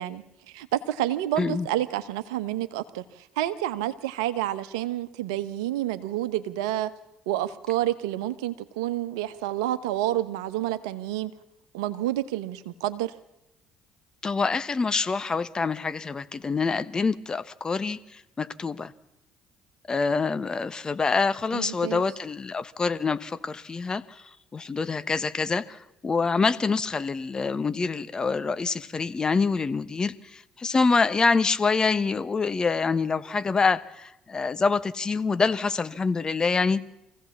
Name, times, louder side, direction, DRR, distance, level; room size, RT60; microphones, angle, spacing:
voice 1, 0.0-6.9 7.3-11.3 11.7-13.1 21.5-22.0, right 13 dB, 80° right, 1.0 m, -29 dB
voice 2, 14.2-18.9 19.9-24.2 24.5-36.8, left 4 dB, 30° left, 1.2 m, -26 dB
25.0 x 16.0 x 7.3 m
hypercardioid pair, 55°, 3 cm